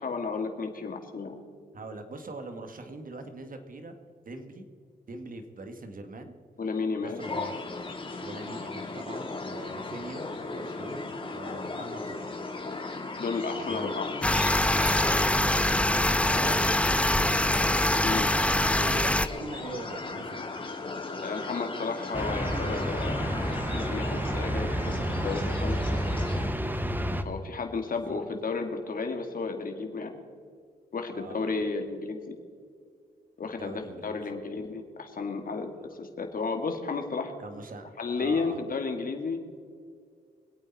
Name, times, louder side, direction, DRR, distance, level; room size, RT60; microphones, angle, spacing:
voice 1, 0.0-1.4 6.6-7.3 13.2-14.1 18.0-18.3 21.2-25.0 25.2-25.8 27.2-30.2 30.9-32.4 33.4-37.3 38.0-39.6, left 4 dB, 55° left, 4 dB, 2.2 m, -33 dB
voice 2, 1.7-4.0 4.3-4.7 5.1-6.3 6.9-7.6 8.2-12.4 13.5-14.0 14.9-16.9 18.3-20.5 27.9-28.2 31.1-31.6 33.4-34.4 37.4-37.9 38.2-38.6, right 2 dB, 55° right, 6 dB, 2.1 m, -43 dB
sound 1, 7.2-26.5, left 3 dB, 30° left, 2.1 m, -36 dB
sound 2, 14.2-19.3, left 1 dB, 5° left, 0.6 m, -24 dB
sound 3, 22.1-27.2, equal, 10° right, 1.2 m, -30 dB
24.5 x 8.7 x 4.3 m, 2.2 s
cardioid pair, 60°, 17 cm